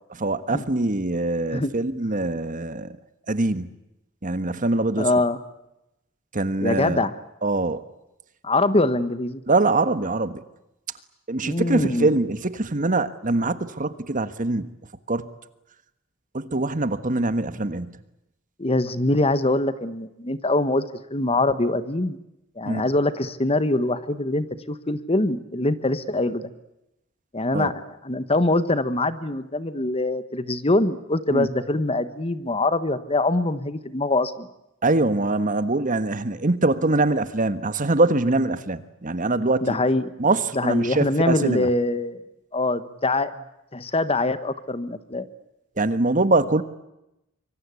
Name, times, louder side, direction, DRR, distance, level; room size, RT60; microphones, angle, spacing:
voice 1, 0.2-2.9 3.3-3.7 4.2-5.1 6.3-7.1 7.4-7.8 9.5-10.4 11.3-14.7 15.1-15.3 16.3-17.9 22.6-22.8 27.5-27.7 31.3-31.5 34.8-39.8 40.2-41.7 45.8-46.6, right 2 dB, 40° right, 12 dB, 1.4 m, -23 dB
voice 2, 5.0-5.4 6.6-7.1 8.4-9.4 11.4-12.2 18.6-20.8 21.1-22.2 22.6-26.5 27.3-34.5 39.6-40.1 40.5-42.2 42.5-43.3 43.7-45.3, left 2 dB, 30° left, 13 dB, 1.3 m, -23 dB
25.0 x 24.0 x 8.4 m, 0.89 s
head